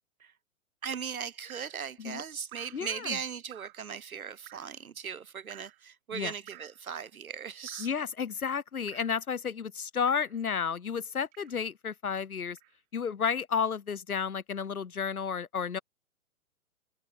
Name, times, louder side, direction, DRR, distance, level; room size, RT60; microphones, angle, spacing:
voice 1, 0.8-7.9, right 7 dB, 75° right, 1.1 m, -38 dB
Drip, 1.5-1.8 2.5-2.9 3.5-3.9 4.5-4.8 5.5-5.8 6.5-6.8 7.7-8.0 8.9-9.2 10.1-10.4 11.3-11.7 12.6-12.7, right 22 dB, 35° right, 4.3 m, -52 dB
voice 2, 2.7-3.2 6.1-6.3 7.8-12.6 12.9-15.8, left 6 dB, 85° left, 0.9 m, -32 dB
figure-of-eight pair, 120°, 42 cm